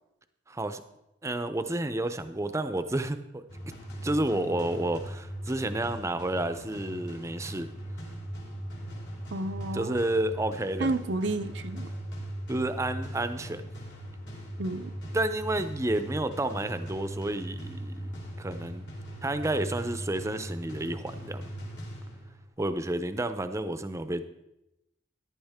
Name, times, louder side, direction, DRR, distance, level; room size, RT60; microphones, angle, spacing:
voice 1, 0.5-0.8 1.2-3.4 4.0-7.7 9.7-10.9 12.5-13.6 15.1-18.1 18.4-18.8 19.2-21.5 22.6-24.2, right 1 dB, 15° right, 10 dB, 0.6 m, -30 dB
sound 1, 3.5-22.5, equal, 70° left, 3.4 m, -39 dB
voice 2, 9.3-10.0 10.8-11.9 14.6-14.9, right 2 dB, 80° right, 10 dB, 0.7 m, -31 dB
14.5 x 11.0 x 3.6 m, 0.90 s
head